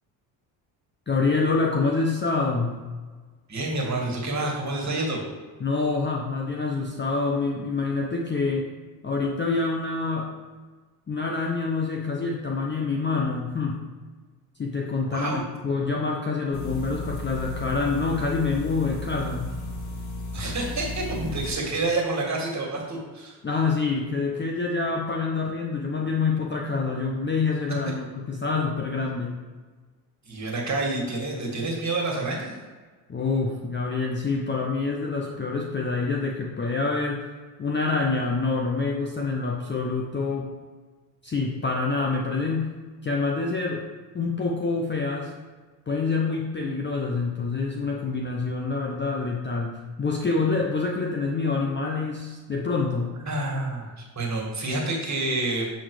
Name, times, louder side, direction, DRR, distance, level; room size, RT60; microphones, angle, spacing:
voice 1, 1.1-2.8 5.6-8.7 9.0-10.3 11.1-13.8 14.6-19.5 23.4-29.3 33.1-37.2 37.6-40.5 41.2-42.7 43.0-43.9 44.1-45.3 45.9-53.2, left 4 dB, 20° left, 1 dB, 0.8 m, -26 dB
voice 2, 3.5-5.2 15.1-15.4 20.3-23.4 30.3-32.5 53.3-55.7, right 2 dB, 35° right, -1 dB, 2.0 m, -28 dB
sound 1, 16.5-21.5, left 1 dB, 50° left, 1.5 m, -34 dB
7.5 x 4.2 x 4.9 m, 1.4 s
supercardioid pair, 80°, 49 cm